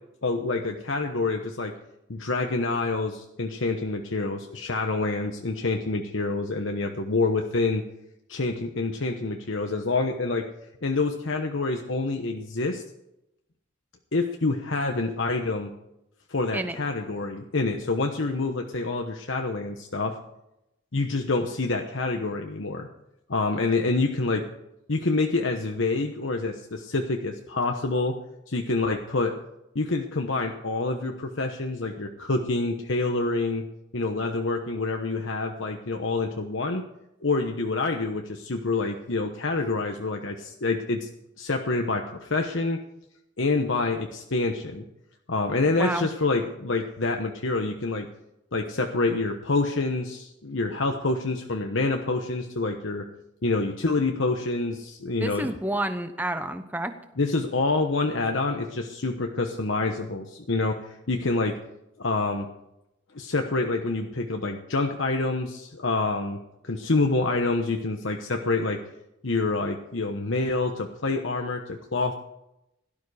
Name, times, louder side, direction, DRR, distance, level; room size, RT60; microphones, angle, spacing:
voice 1, 0.2-1.7 2.1-7.8 8.3-10.5 10.8-12.8 14.1-15.7 16.3-20.2 20.9-22.9 23.3-24.4 24.9-28.2 28.5-29.3 29.7-33.6 33.9-36.8 37.2-41.1 41.4-42.8 43.4-44.8 45.3-48.1 48.5-53.0 53.4-55.5 57.2-61.6 62.0-62.5 63.1-66.4 66.6-68.8 69.2-72.1, left 3 dB, 70° left, 3 dB, 1.1 m, -27 dB
voice 2, 45.6-46.1 55.2-57.0, right 1 dB, 10° right, 8 dB, 1.0 m, -29 dB
17.0 x 12.0 x 5.0 m, 0.86 s
head